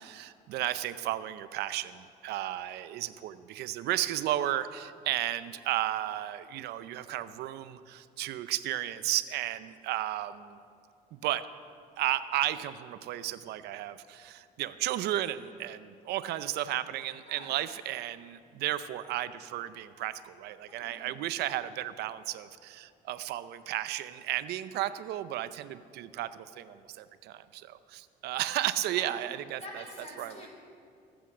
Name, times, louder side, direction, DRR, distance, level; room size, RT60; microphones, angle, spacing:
voice 1, 0.0-10.6 11.1-11.4 12.0-29.8 30.2-30.5, right 13 dB, 80° right, 13 dB, 0.6 m, -34 dB
voice 2, 20.7-21.1 28.9-29.1 29.6-30.5, left 1 dB, 40° left, -1 dB, 3.7 m, -47 dB
20.0 x 8.1 x 6.1 m, 2.4 s
cardioid pair, 130°, 17 cm